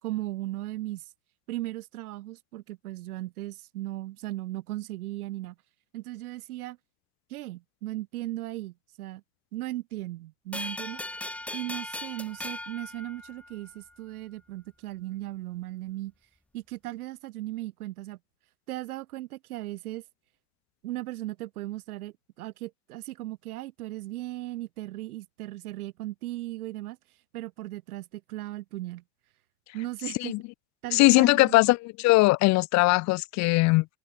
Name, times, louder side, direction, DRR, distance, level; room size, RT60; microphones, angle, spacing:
voice 1, 0.0-1.0 1.5-5.5 5.9-6.8 7.3-9.2 9.5-11.0 11.5-16.1 16.5-18.2 18.7-20.0 20.8-27.0 27.3-29.0 29.7-30.3 30.8-31.6, right 16 dB, 90° right, 2.8 m, -37 dB
sound 1, 10.5-13.8, left 1 dB, 5° left, 0.7 m, -38 dB
voice 2, 30.9-33.9, left 22 dB, 40° left, 0.7 m, -20 dB
supercardioid pair, 140°, 43 cm